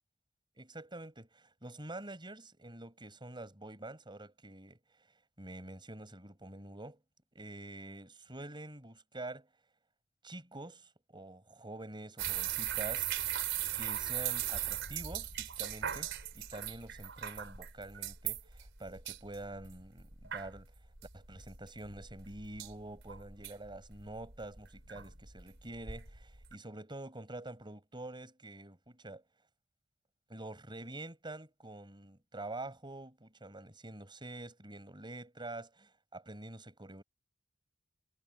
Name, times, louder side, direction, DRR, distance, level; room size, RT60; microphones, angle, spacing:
voice 1, 0.6-5.1 5.4-7.0 7.3-9.5 10.2-13.1 13.7-20.7 21.1-29.2 30.3-37.0, right 2 dB, 25° right, 5.9 m, -47 dB
sound 1, 12.2-26.6, right 11 dB, 65° right, 4.6 m, -39 dB
head